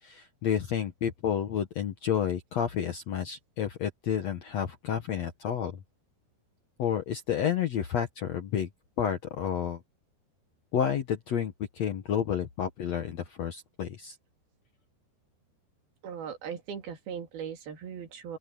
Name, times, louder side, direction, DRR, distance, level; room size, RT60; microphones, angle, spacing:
voice 1, 0.0-5.8 6.8-8.7 9.0-9.8 10.7-14.1, left 9 dB, 75° left, 1.5 m, -30 dB
voice 2, 16.0-18.4, right 7 dB, 65° right, 4.2 m, -39 dB
open air
omnidirectional pair, 5.0 m